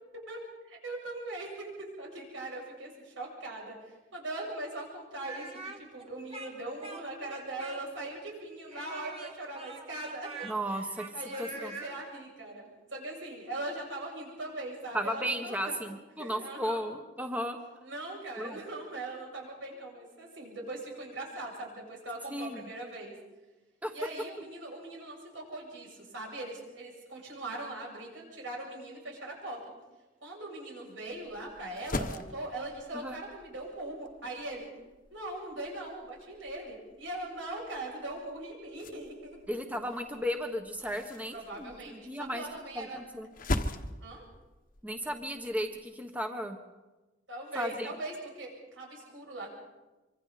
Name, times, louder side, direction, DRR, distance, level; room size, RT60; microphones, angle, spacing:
voice 1, 0.3-15.8 16.2-16.8 17.8-23.1 23.9-29.6 30.2-34.7 35.1-39.4 41.3-43.0 44.0-44.2 47.3-49.5, right 2 dB, 90° right, -2 dB, 7.7 m, -40 dB
Speech, 5.2-8.1 8.7-11.9, right 3 dB, 30° right, 2.6 m, -44 dB
voice 2, 10.4-11.1 11.4-11.7 14.9-17.6 18.4-18.6 22.3-22.6 23.8-23.9 32.9-33.2 39.5-42.4 42.7-43.3 44.8-46.6 47.5-47.9, equal, 10° right, 4 dB, 1.3 m, -35 dB
sound 1, 31.1-45.8, left 1 dB, 45° left, 1.2 m, -42 dB
25.5 x 25.0 x 4.2 m, 1.1 s
head